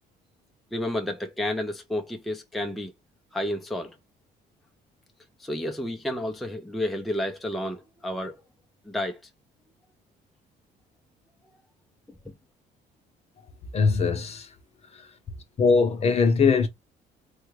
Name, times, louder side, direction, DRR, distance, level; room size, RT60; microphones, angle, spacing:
voice 1, 0.7-2.9 3.3-3.9 5.4-8.4 8.9-9.2, left 1 dB, ahead, 0.5 m, -30 dB
voice 2, 13.7-14.5 15.6-16.7, left 5 dB, 40° left, 0.7 m, -21 dB
3.4 x 2.2 x 3.1 m
cardioid pair, 110°, 17 cm